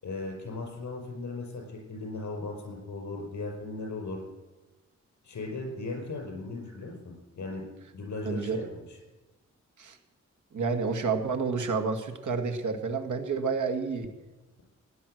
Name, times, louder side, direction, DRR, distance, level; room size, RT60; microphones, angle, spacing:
voice 1, 0.0-4.2 5.2-7.6 7.9-9.0, left 3 dB, 70° left, 1 dB, 5.4 m, -37 dB
voice 2, 8.3-8.7 9.8-10.0 10.5-14.1, right 5 dB, 85° right, 6 dB, 1.9 m, -29 dB
17.0 x 10.0 x 7.9 m, 1.1 s
wide cardioid pair, 155°, 29 cm